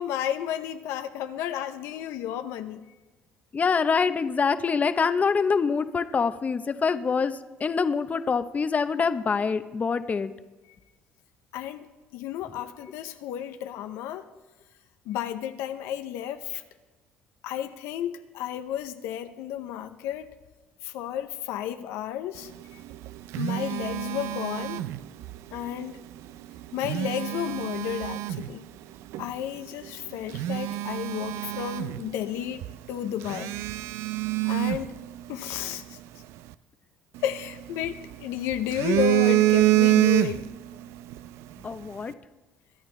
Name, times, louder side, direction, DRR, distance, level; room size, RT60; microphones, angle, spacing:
voice 1, 0.0-2.9 11.5-14.3 15.1-16.6 17.4-20.3 20.8-22.8 23.4-24.8 25.5-26.0 26.7-28.7 29.2-33.5 34.4-35.0 35.3-36.0 37.2-40.5, left 11 dB, 80° left, 9 dB, 0.6 m, -32 dB
voice 2, 3.5-10.3 41.6-42.1, left 5 dB, 35° left, 11 dB, 0.7 m, -25 dB
Telephone, 22.8-25.4 26.6-28.5 29.1-29.3 29.8-29.9 30.3-32.4 32.6-32.7 33.2-35.6 37.2-38.1 38.5-40.7 41.0-41.2, right 16 dB, 75° right, 0.4 m, -26 dB
22.5 x 9.0 x 3.3 m, 1.2 s
supercardioid pair, 80°, 5 cm